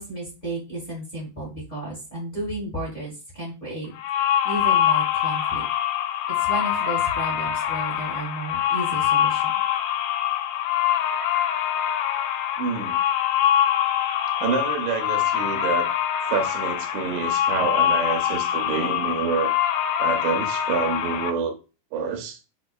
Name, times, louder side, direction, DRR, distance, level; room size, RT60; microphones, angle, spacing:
voice 1, 0.0-3.9 4.4-5.6 6.4-9.6, right 1 dB, 30° left, -5 dB, 0.9 m, -33 dB
sound 1, 3.9-21.3, left 10 dB, 85° left, 2.8 m, -24 dB
voice 2, 12.6-13.0 14.4-15.9 16.3-19.5 20.0-21.5 21.9-22.4, right 6 dB, 85° right, 4 dB, 3.0 m, -27 dB
6.7 x 2.4 x 2.3 m, 0.31 s
omnidirectional pair, 5.0 m